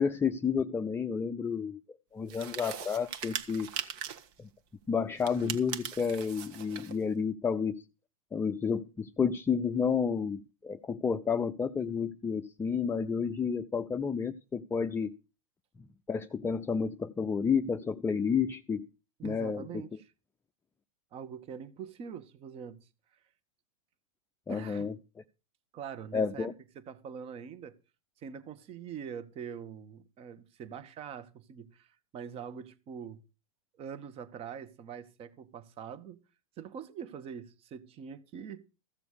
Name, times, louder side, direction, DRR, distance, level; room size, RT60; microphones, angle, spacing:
voice 1, 0.0-3.7 4.4-4.5 4.9-7.8 8.3-15.2 16.1-18.9 19.2-19.8 24.5-24.9 26.1-26.5, left 6 dB, 15° left, 0.6 m, -31 dB
sound 1, 2.3-4.3 5.2-7.0, right 8 dB, 50° right, 1.5 m, -40 dB
voice 2, 19.2-20.1 21.1-22.9 24.5-24.9 25.7-27.8 28.2-33.2 33.8-36.2 36.6-38.6, right 7 dB, 35° right, 1.3 m, -44 dB
15.0 x 6.9 x 6.5 m
hypercardioid pair, 105°, 17 cm